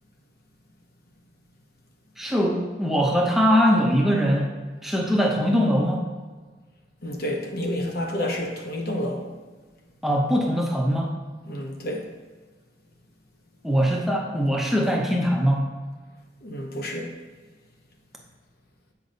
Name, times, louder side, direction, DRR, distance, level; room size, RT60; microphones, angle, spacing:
voice 1, 2.2-4.5 4.8-6.0 10.0-11.1 13.6-15.7, equal, ahead, -1 dB, 0.6 m, -22 dB
voice 2, 7.0-9.3 11.5-12.1 16.4-17.1, left 1 dB, 60° left, 2 dB, 0.9 m, -29 dB
8.0 x 5.1 x 2.7 m, 1.4 s
head